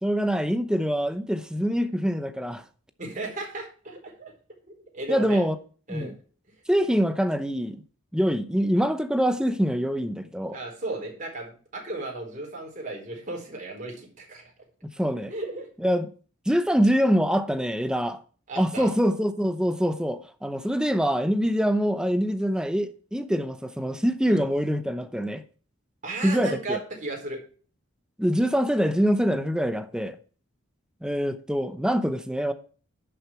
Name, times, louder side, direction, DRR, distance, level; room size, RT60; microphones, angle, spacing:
voice 1, 0.0-2.6 5.1-5.5 5.9-6.1 6.7-7.8 8.1-10.6 15.0-15.3 15.8-16.1 16.5-18.2 18.6-25.4 26.2-26.8 28.2-30.2 31.0-32.5, equal, 5° right, 0.7 m, -24 dB
voice 2, 3.0-4.3 4.7-5.4 5.9-6.1 10.5-14.5 15.3-15.7 18.5-18.9 24.3-24.5 26.0-27.4, right 2 dB, 35° right, 4.3 m, -35 dB
11.0 x 6.8 x 4.4 m
head